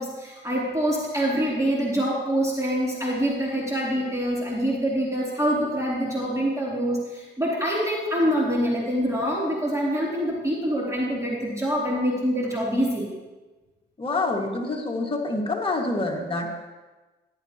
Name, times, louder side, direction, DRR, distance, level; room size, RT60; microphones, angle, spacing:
voice 1, 0.0-13.1, equal, 15° right, -5 dB, 3.2 m, -25 dB
voice 2, 14.0-16.5, left 2 dB, 25° left, 1 dB, 1.9 m, -27 dB
14.5 x 10.5 x 3.0 m, 1.2 s
cardioid pair, 90°, 20 cm